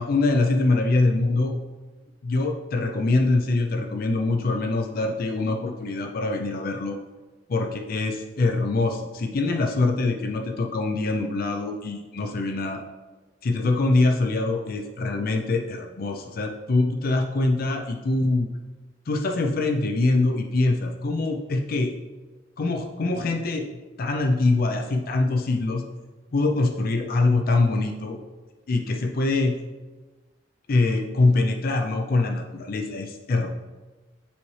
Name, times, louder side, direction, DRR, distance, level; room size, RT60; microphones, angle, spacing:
voice 1, 0.0-1.6 2.2-7.0 7.5-12.8 13.4-18.5 19.1-21.9 22.6-25.8 26.3-28.2 28.7-29.6 30.7-33.5, left 2 dB, 50° left, 4 dB, 0.5 m, -24 dB
7.1 x 4.1 x 3.2 m, 1.2 s
head